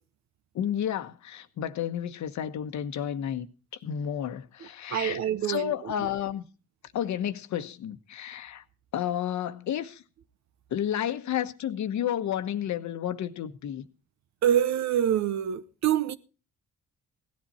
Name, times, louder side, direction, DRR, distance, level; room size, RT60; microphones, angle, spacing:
voice 1, 0.5-3.5 3.8-6.4 6.9-8.6 8.9-10.0 10.7-13.8, left 10 dB, 70° left, 1.1 m, -31 dB
voice 2, 4.9-5.9 14.4-16.2, right 10 dB, 65° right, 0.9 m, -26 dB
16.5 x 10.5 x 4.2 m
cardioid pair, 90°, 30 cm